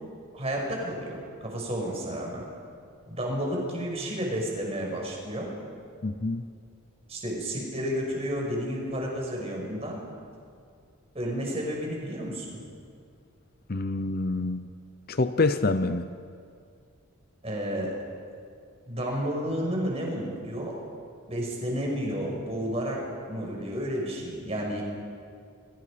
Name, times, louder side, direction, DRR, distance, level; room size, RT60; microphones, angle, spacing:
voice 1, 0.3-2.4 3.1-5.5 7.1-10.0 11.1-12.6 17.4-17.9 18.9-20.7 21.3-23.0 23.3-24.8, equal, 30° right, -1 dB, 6.1 m, -31 dB
voice 2, 6.0-6.5 13.7-14.7 15.1-16.1, left 3 dB, 45° left, 10 dB, 0.7 m, -26 dB
29.0 x 23.5 x 5.2 m, 2.3 s
head